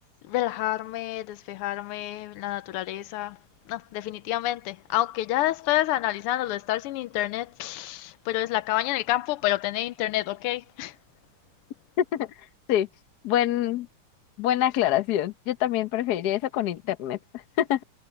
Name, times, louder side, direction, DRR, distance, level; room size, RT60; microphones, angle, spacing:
voice 1, 0.2-3.4 3.7-11.0, left 15 dB, 90° left, 1.6 m, -28 dB
voice 2, 12.0-12.3 12.7-12.9 13.2-13.9 14.4-17.8, left 12 dB, 55° left, 1.2 m, -25 dB
omnidirectional pair, 2.4 m